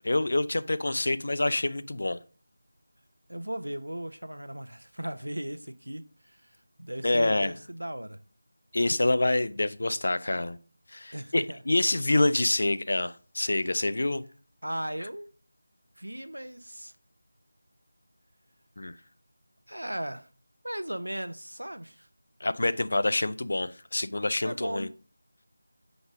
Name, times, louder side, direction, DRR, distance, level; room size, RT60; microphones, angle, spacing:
voice 1, 0.0-2.2 7.0-7.5 8.7-10.6 10.9-14.2 18.8-18.9 22.4-24.9, left 2 dB, 55° left, 0.4 m, -26 dB
voice 2, 3.3-6.5 6.8-8.2 11.1-11.6 14.6-15.3 16.0-16.9 19.7-20.3 20.6-22.1 24.4-24.9, right 1 dB, 80° right, 0.6 m, -37 dB
5.1 x 4.0 x 5.2 m
figure-of-eight pair, 165°, 0 cm